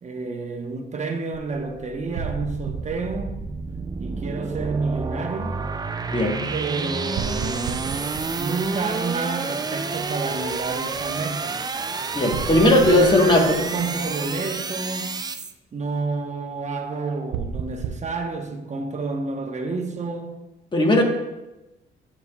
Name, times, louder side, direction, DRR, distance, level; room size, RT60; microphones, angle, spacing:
voice 1, 0.0-3.3 4.0-5.6 6.5-11.6 12.7-15.1 15.7-20.4, right 4 dB, 35° right, 1.0 m, -29 dB
sound 1, 1.3-15.5, right 4 dB, 20° right, 0.4 m, -30 dB
sound 2, 2.1-4.2 7.1-9.4 12.3-14.3 17.3-18.0, right 6 dB, 85° right, 0.5 m, -33 dB
voice 2, 6.1-6.4 12.1-13.6 20.7-21.0, left 1 dB, 25° left, 1.3 m, -17 dB
9.4 x 5.5 x 2.3 m
cardioid pair, 90°, 20 cm